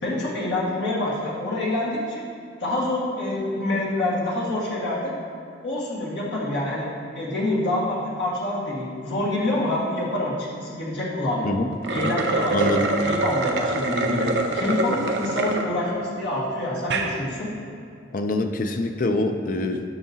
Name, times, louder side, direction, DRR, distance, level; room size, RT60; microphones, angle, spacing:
voice 1, 0.0-2.2 2.6-5.1 5.6-6.9 7.1-11.5 11.8-12.8 13.0-17.5, left 1 dB, 70° left, -5 dB, 1.7 m, -26 dB
sound 1, 11.7-15.7 16.2-16.3 16.8-17.1, right 2 dB, 65° right, 0.6 m, -25 dB
voice 2, 12.5-12.9 18.1-19.8, left 2 dB, 45° left, 6 dB, 0.5 m, -25 dB
Wind instrument woodwind instrument, 13.6-17.3, right 4 dB, 85° left, 0.7 m, -43 dB
11.0 x 5.9 x 2.8 m, 2.4 s
head